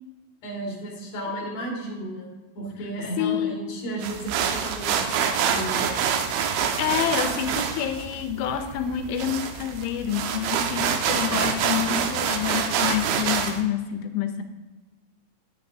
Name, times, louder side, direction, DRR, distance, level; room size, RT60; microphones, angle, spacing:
voice 1, 0.4-2.3 2.5-5.9, right 1 dB, 50° left, -1 dB, 2.6 m, -33 dB
voice 2, 3.2-3.6 6.8-14.4, left 9 dB, 90° left, 8 dB, 2.5 m, -28 dB
sound 1, 4.0-13.6, right 7 dB, 85° right, 2.5 m, -26 dB
9.2 x 9.1 x 2.6 m, 1.2 s
omnidirectional pair, 4.3 m